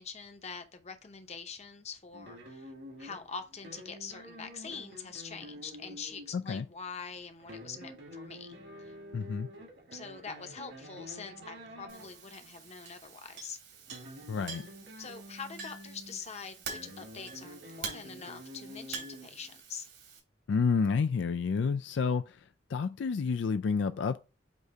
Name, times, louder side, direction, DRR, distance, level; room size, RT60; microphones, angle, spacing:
voice 1, 0.0-2.7 3.0-8.9 9.9-13.6 15.0-19.9, left 5 dB, 35° left, 0.8 m, -44 dB
sound 1, 2.1-12.7 13.7-19.6, equal, 65° right, 1.9 m, -49 dB
voice 2, 6.3-6.7 9.1-9.5 14.3-14.6 20.5-22.4 22.7-24.2, left 5 dB, 75° left, 0.4 m, -29 dB
Chink clink, 11.9-20.2, right 5 dB, 85° right, 3.2 m, -46 dB
8.2 x 2.8 x 4.6 m
head